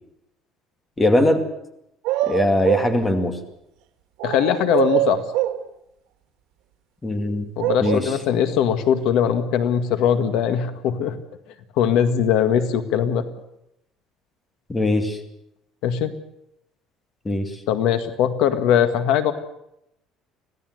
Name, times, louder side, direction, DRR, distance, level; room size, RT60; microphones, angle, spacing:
voice 1, 1.0-1.4 2.3-3.4 7.0-7.5 7.8-8.2 14.7-15.2 17.2-17.6, left 1 dB, 10° left, 6 dB, 2.3 m, -21 dB
sound 1, 2.0-2.9 4.2-5.6 7.6-8.0, right 14 dB, 80° right, 2.4 m, -23 dB
voice 2, 4.2-5.2 7.6-11.2 11.8-13.3 15.8-16.1 17.7-19.3, left 9 dB, 65° left, 9 dB, 1.8 m, -20 dB
25.0 x 17.0 x 7.9 m, 0.82 s
cardioid pair, 165°, 0 cm